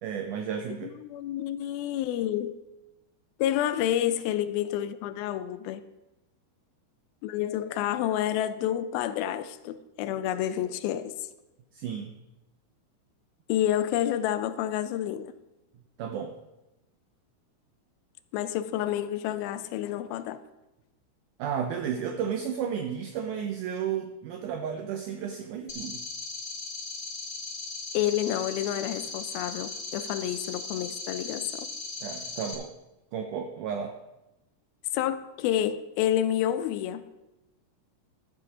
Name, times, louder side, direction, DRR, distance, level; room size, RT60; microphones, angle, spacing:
voice 1, 0.0-0.9 11.7-12.2 16.0-16.3 21.4-26.0 32.0-32.7 33.1-33.9, right 7 dB, 85° right, 1.8 m, -33 dB
voice 2, 0.8-2.7 3.4-5.8 7.2-11.1 13.5-15.3 18.3-20.4 27.9-31.7 34.9-37.0, left 11 dB, 80° left, 2.3 m, -29 dB
sound 1, 25.7-32.5, left 3 dB, 40° left, 1.2 m, -38 dB
12.0 x 7.6 x 4.9 m
omnidirectional pair, 4.4 m